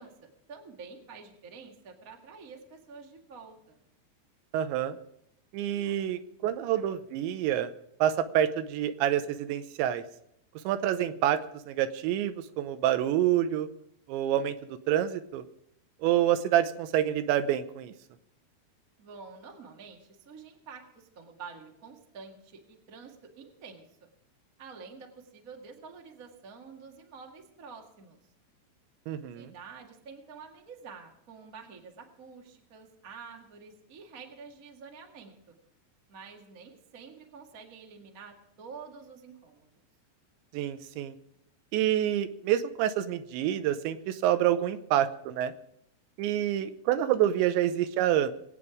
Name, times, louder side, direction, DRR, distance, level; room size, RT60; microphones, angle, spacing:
voice 1, 0.0-3.8 19.0-24.1 24.6-28.2 29.3-35.6 36.1-39.7, right 5 dB, 55° right, 1 dB, 0.9 m, -48 dB
voice 2, 4.5-5.0 5.5-7.7 8.0-10.0 10.6-11.4 11.7-13.7 14.1-14.6 14.9-15.4 16.0-17.9 29.1-29.5 40.5-41.1 41.7-45.5 46.2-48.3, right 11 dB, 85° right, 11 dB, 3.1 m, -27 dB
22.5 x 8.8 x 4.9 m, 0.75 s
omnidirectional pair, 5.1 m